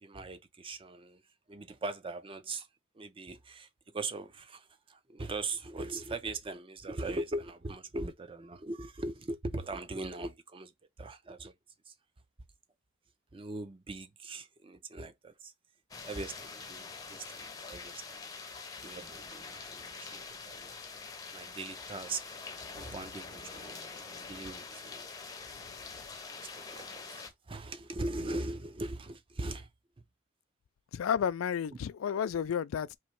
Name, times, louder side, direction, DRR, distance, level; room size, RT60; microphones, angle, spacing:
voice 1, 0.0-1.2 1.5-2.7 2.9-10.7 11.0-11.5 11.9-12.0 13.3-15.5 16.0-18.2 18.5-20.7 21.3-22.4 22.7-23.7 24.1-25.2 26.4-29.7, right 2 dB, 25° right, 0.5 m, -40 dB
sound 1, 15.9-27.3, left 4 dB, 20° left, 0.6 m, -45 dB
voice 2, 30.9-32.9, left 8 dB, 80° left, 0.3 m, -31 dB
3.1 x 2.8 x 4.3 m
head